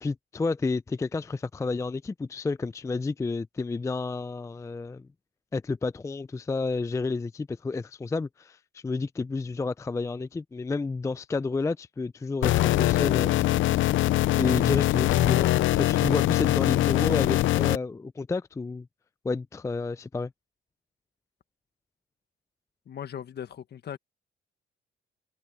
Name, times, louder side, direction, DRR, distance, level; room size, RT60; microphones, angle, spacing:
voice 1, 0.0-5.1 5.5-13.4 14.4-18.9 19.2-20.3, left 3 dB, 15° left, 0.4 m, -30 dB
sound 1, 12.4-17.8, left 15 dB, 80° left, 0.6 m, -23 dB
voice 2, 22.9-24.0, left 9 dB, 55° left, 1.5 m, -38 dB
cardioid pair, 90°, 20 cm